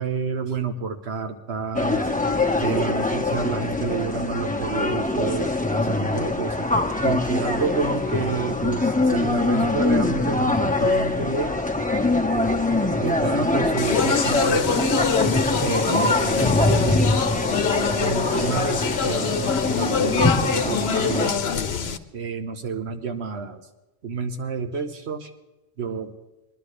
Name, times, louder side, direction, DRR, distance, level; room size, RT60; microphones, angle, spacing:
voice 1, 0.0-2.0 2.6-6.7 7.0-11.5 13.0-14.8 15.6-17.1 18.0-21.5 22.1-23.6 24.0-25.3 25.8-26.1, right 5 dB, 85° right, 5 dB, 1.3 m, -29 dB
sound 1, 1.7-21.3, left 2 dB, 10° left, 1.3 m, -23 dB
Speech, 13.8-22.0, left 7 dB, 80° left, 1.1 m, -25 dB
22.5 x 12.0 x 3.3 m, 1.0 s
omnidirectional pair, 1.1 m